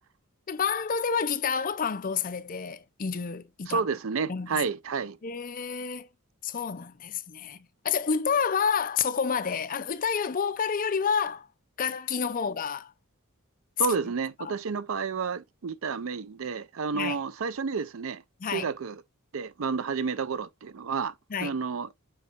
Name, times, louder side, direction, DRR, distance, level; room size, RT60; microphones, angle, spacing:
voice 1, 0.5-3.9 4.3-4.6 5.2-6.1 6.4-11.5 11.8-12.9 13.9-14.0 14.4-14.6 16.9-17.2 18.4-18.7 21.3-21.5, left 6 dB, 40° left, 0.5 m, -29 dB
voice 2, 3.7-5.2 13.8-18.2 18.5-19.0 19.3-21.1 21.4-22.0, right 5 dB, 65° right, 0.5 m, -30 dB
7.7 x 4.6 x 2.9 m
head